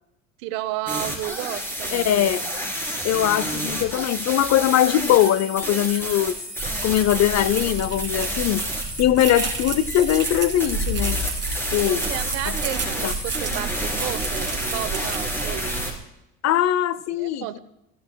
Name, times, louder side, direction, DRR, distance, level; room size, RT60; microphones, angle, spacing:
voice 1, 0.4-2.3 11.7-15.8 17.1-17.6, right 15 dB, 80° right, 12 dB, 0.9 m, -32 dB
sound 1, 0.9-15.9, equal, 5° left, 4.2 m, -30 dB
voice 2, 1.9-2.4 3.0-6.4 6.8-8.6 9.0-11.2 11.7-12.1 12.5-12.6 13.0-13.1 16.4-17.5, left 12 dB, 45° left, 19 dB, 0.6 m, -21 dB
sound 2, 6.6-15.9, right 3 dB, 30° right, 3.3 m, -31 dB
16.5 x 15.0 x 2.3 m, 0.91 s
supercardioid pair, 90°, 38 cm